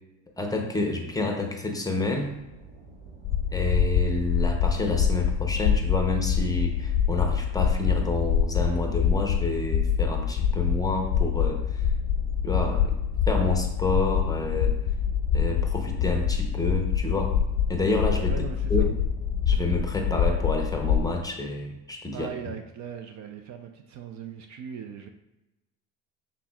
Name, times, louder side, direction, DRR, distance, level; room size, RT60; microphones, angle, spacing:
voice 1, 0.4-2.3 3.5-11.9 12.4-13.0 13.3-14.8 15.3-17.4 17.7-18.4 18.7-18.9 19.5-22.3, left 2 dB, 10° left, 2 dB, 0.7 m, -28 dB
sound 1, 2.1-19.6, right 3 dB, 65° right, 1.6 m, -48 dB
sound 2, 3.2-21.1, left 7 dB, 70° left, 0.5 m, -25 dB
voice 2, 18.3-18.9 22.1-25.1, right 7 dB, 45° right, 6 dB, 0.5 m, -39 dB
5.8 x 3.6 x 2.3 m, 0.98 s
supercardioid pair, 95°, 39 cm